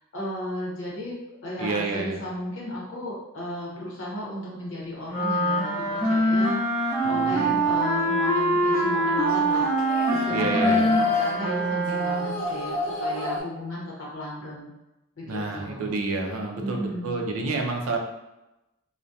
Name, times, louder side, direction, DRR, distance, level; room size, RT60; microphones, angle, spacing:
voice 1, 0.1-1.1 1.4-6.6 7.1-14.7 15.2-16.0 16.6-17.2, left 1 dB, 60° left, -5 dB, 0.7 m, -35 dB
voice 2, 1.6-2.2 7.0-7.6 10.3-10.9 15.3-18.0, right 3 dB, 80° right, 2 dB, 0.4 m, -29 dB
sound 1, 5.1-12.4, right 1 dB, 5° right, 0.6 m, -24 dB
sound 2, 6.9-13.4, left 3 dB, 25° left, 0.8 m, -31 dB
2.6 x 2.1 x 2.2 m, 0.95 s
head